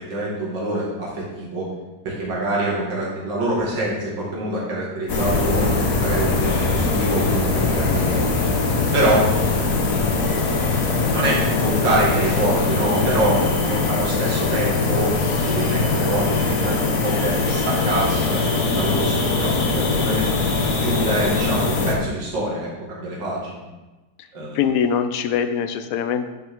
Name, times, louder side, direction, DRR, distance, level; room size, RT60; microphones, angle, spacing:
voice 1, 0.1-1.7 2.0-5.7 6.0-8.2 8.9-9.3 11.1-15.2 15.4-20.2 20.8-23.6 24.3-24.6, right 1 dB, 70° right, -6 dB, 2.8 m, -25 dB
sound 1, 5.1-21.9, left 3 dB, 50° left, 1.3 m, -21 dB
voice 2, 24.5-26.3, left 7 dB, 75° left, 9 dB, 0.8 m, -22 dB
10.5 x 5.8 x 3.7 m, 1.1 s
omnidirectional pair, 2.1 m